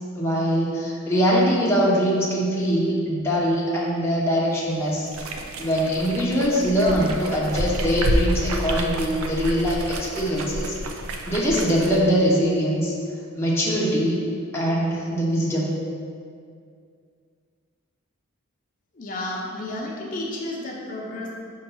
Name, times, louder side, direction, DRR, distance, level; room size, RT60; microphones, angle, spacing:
voice 1, 0.1-5.1 5.6-10.7 11.3-12.9 13.3-14.2 14.5-15.7, equal, 10° left, -6 dB, 0.8 m, -22 dB
sound 1, 5.1-12.0, right 1 dB, 80° right, 0.5 m, -29 dB
voice 2, 18.9-21.3, left 1 dB, 40° left, -3 dB, 0.8 m, -32 dB
5.6 x 3.2 x 5.5 m, 2.3 s
head